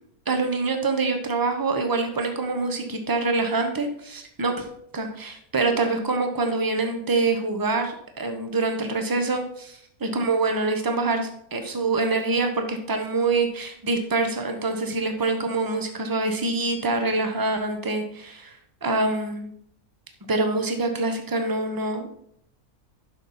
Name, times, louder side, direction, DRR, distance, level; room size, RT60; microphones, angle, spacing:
voice 1, 0.3-4.7 4.9-18.5 18.8-19.5 20.3-22.2, right 3 dB, 15° right, 5 dB, 1.0 m, -25 dB
11.0 x 6.4 x 4.2 m, 0.69 s
omnidirectional pair, 1.5 m